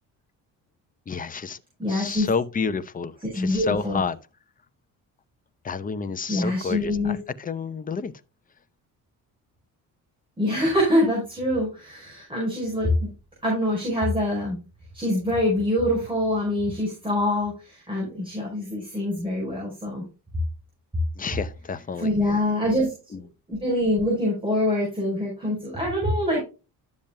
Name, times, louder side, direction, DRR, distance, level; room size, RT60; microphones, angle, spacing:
voice 1, 1.1-1.6 1.9-4.2 5.6-8.1 21.2-22.4 23.1-23.2, left 5 dB, 25° left, 0.7 m, -30 dB
voice 2, 1.8-2.3 3.2-4.0 6.3-7.2 10.4-13.1 13.4-14.6 14.9-20.0 22.0-22.9 23.5-26.4, left 1 dB, 15° right, 4.9 m, -25 dB
12.0 x 7.2 x 2.2 m
cardioid pair, 135°, 36 cm